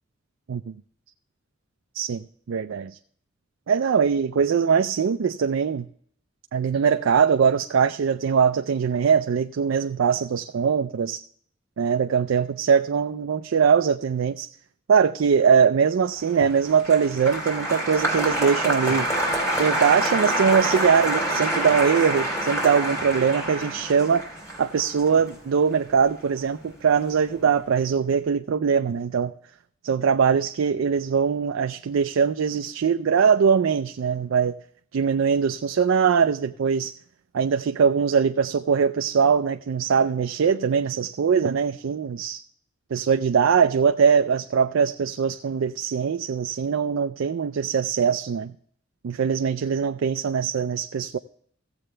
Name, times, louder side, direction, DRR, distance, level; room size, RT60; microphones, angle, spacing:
voice 1, 1.9-3.0 3.7-5.9 6.5-11.2 11.8-14.5 14.9-19.1 19.6-24.2 24.6-29.3 29.8-34.5 34.9-37.0 37.3-42.4 42.9-48.5 49.0-51.2, right 6 dB, 80° right, 0.4 m, -22 dB
Applause, 16.3-26.7 26.9-27.5, right 1 dB, 15° left, 3.3 m, -27 dB
15.5 x 7.7 x 3.3 m
head